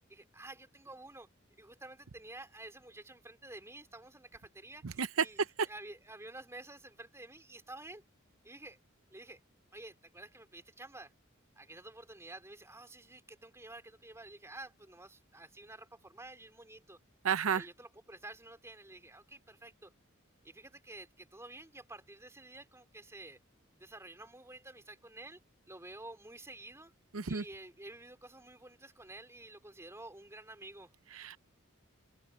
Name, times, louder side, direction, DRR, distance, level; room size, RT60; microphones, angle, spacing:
voice 1, 0.1-1.3 1.6-5.4 5.7-8.0 8.4-8.8 9.1-9.4 9.7-11.1 11.5-17.0 17.5-19.9 20.4-23.4 23.7-25.4 25.7-26.9 27.3-30.9, right 2 dB, 15° right, 3.2 m, -50 dB
voice 2, 4.8-5.7 17.2-17.7 27.1-27.4 31.1-31.4, right 6 dB, 85° right, 0.7 m, -32 dB
open air
head